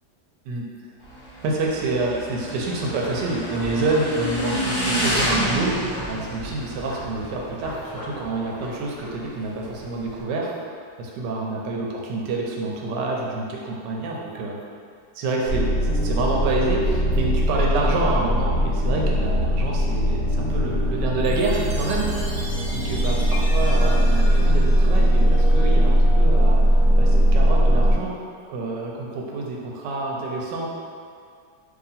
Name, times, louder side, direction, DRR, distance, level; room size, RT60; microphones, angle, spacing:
Motorcycle / Engine, 1.0-10.2, equal, 25° left, 0.8 m, -30 dB
voice 1, 1.4-5.8 6.1-10.5 11.0-14.6 15.1-15.7 16.0-23.2 23.5-28.2 28.4-30.7, right 2 dB, 85° right, -2 dB, 1.3 m, -27 dB
sound 1, 15.5-27.9, equal, 65° left, 0.9 m, -19 dB
Chime, 21.2-25.7, left 1 dB, 70° right, 1.1 m, -38 dB
2.8 x 2.8 x 4.0 m, 2.2 s
omnidirectional pair, 1.8 m